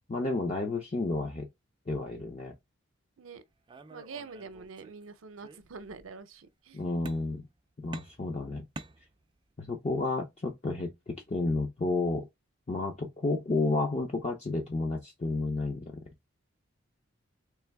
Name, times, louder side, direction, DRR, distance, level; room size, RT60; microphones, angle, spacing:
voice 1, 0.1-1.5 1.9-2.5 6.7-7.5 7.8-8.7 9.6-12.3 12.7-16.0, left 2 dB, 35° left, 0.6 m, -31 dB
sound 1, 3.7-5.0 5.4-6.1 7.1-7.6 7.9-9.5, right 2 dB, 25° right, 0.4 m, -47 dB
voice 2, 3.9-6.9, right 4 dB, 80° right, 0.6 m, -45 dB
3.4 x 3.3 x 3.4 m
head